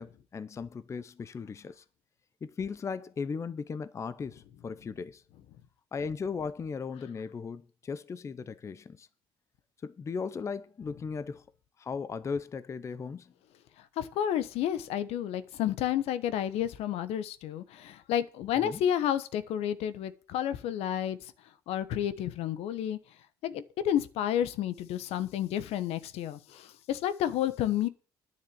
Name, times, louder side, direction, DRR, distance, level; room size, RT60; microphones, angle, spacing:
voice 1, 0.0-1.8 2.4-5.2 5.9-9.1 9.8-11.4 11.8-13.3 18.6-18.8, left 5 dB, 30° left, 0.6 m, -37 dB
voice 2, 14.0-21.2 21.7-23.0 23.4-27.9, left 10 dB, 75° left, 1.1 m, -31 dB
10.0 x 6.5 x 8.5 m
cardioid pair, 120°, 10 cm